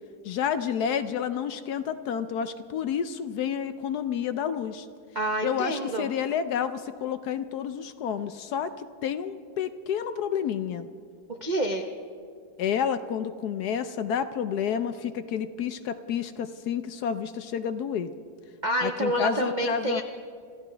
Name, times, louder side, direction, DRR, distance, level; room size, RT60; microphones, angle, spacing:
voice 1, 0.2-4.9 5.4-10.9 12.6-18.1 18.8-20.0, left 8 dB, 70° left, 11 dB, 1.0 m, -30 dB
voice 2, 5.1-6.1 11.3-11.8 18.6-20.0, right 1 dB, 50° right, 4 dB, 0.5 m, -28 dB
27.0 x 15.0 x 3.4 m, 2.3 s
omnidirectional pair, 2.0 m